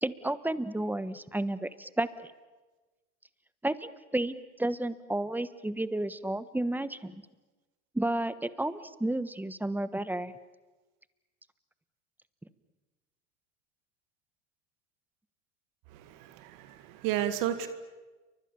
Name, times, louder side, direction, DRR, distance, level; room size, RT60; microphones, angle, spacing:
voice 1, 0.0-2.1 3.6-7.1 7.9-10.3, right 1 dB, 5° right, 14 dB, 1.3 m, -32 dB
voice 2, 15.9-17.7, right 11 dB, 60° right, 10 dB, 2.1 m, -33 dB
30.0 x 24.0 x 7.1 m, 1.2 s
hypercardioid pair, 85°, 37 cm